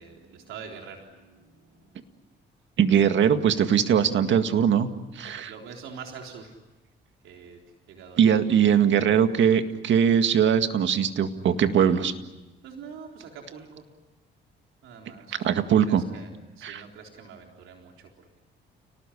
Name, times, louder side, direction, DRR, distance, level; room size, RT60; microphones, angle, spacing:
voice 1, 0.0-2.0 5.3-6.5 7.2-7.6 7.9-8.3 12.6-13.9 14.8-18.1, right 6 dB, 85° right, 2 dB, 3.9 m, -45 dB
voice 2, 2.8-4.9 5.2-5.5 8.2-12.1 15.4-16.0 16.6-16.8, right 8 dB, 70° right, 8 dB, 1.9 m, -21 dB
30.0 x 19.5 x 10.0 m, 1.1 s
cardioid pair, 90°, 20 cm